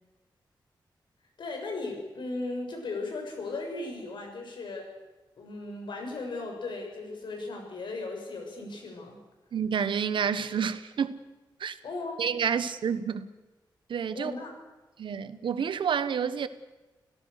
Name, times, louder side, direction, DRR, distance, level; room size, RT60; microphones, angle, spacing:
voice 1, 1.4-4.9 5.4-9.2 11.8-12.2 14.1-14.6, left 3 dB, 75° left, 6.6 m, -36 dB
voice 2, 9.5-11.2 11.6-11.7 12.2-13.3 13.9-14.3 15.0-16.5, right 7 dB, 90° right, 1.3 m, -29 dB
29.0 x 17.5 x 6.7 m
wide cardioid pair, 125°, 8 cm